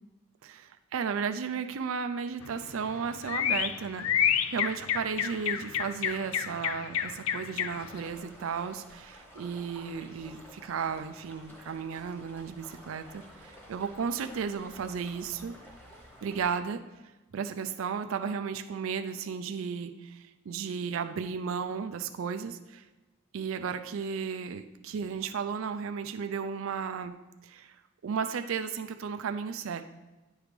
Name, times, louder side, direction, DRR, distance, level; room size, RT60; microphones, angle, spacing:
voice 1, 0.4-15.5 16.2-16.8 17.3-22.8 23.3-27.2 27.4-27.8 28.0-29.9, right 6 dB, 70° right, 8 dB, 0.4 m, -34 dB
sound 1, 2.4-8.0, left 9 dB, 80° left, 0.4 m, -30 dB
sound 2, 7.7-16.5, equal, 10° left, 1.3 m, -51 dB
9.6 x 3.2 x 5.1 m, 1.1 s
head